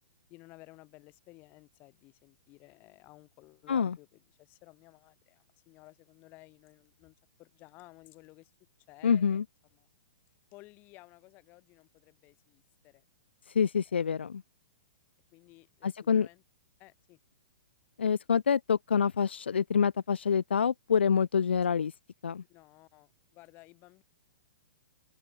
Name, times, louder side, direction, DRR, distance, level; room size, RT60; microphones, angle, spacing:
voice 1, 0.3-8.5 8.9-9.4 9.7-9.9 10.5-13.1 13.9-14.0 15.3-16.4 16.8-17.2 22.5-24.0, left 21 dB, 35° left, 5.6 m, -56 dB
voice 2, 9.0-9.4 13.5-14.4 15.8-16.3 18.0-21.9 22.2-22.4, left 7 dB, 75° left, 0.3 m, -26 dB
open air
figure-of-eight pair, 115°, 6 cm